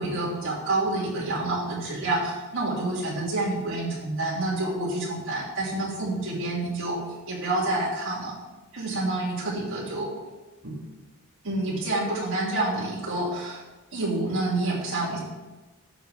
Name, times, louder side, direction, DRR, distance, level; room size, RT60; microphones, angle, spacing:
voice 1, 0.0-7.0 7.3-8.3 8.7-10.1 10.6-10.8 11.4-13.6 13.9-15.2, right 2 dB, 65° right, -6 dB, 2.6 m, -28 dB
16.5 x 7.2 x 3.4 m, 1.2 s
head